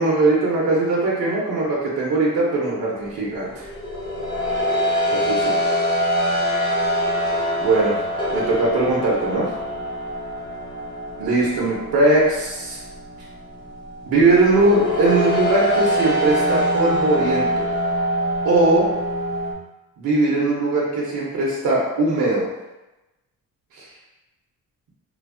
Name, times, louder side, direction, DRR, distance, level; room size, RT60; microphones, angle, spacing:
voice 1, 0.0-3.6 5.1-5.5 7.6-8.0 8.3-9.5 11.2-12.8 14.1-17.7 18.4-18.9 20.0-22.5 23.7-23.8, right 2 dB, 80° right, -5 dB, 0.7 m, -20 dB
sound 1, 3.1-19.5, equal, 15° left, 0.5 m, -24 dB
3.1 x 2.0 x 2.5 m, 1.0 s
cardioid pair, 110°, 35 cm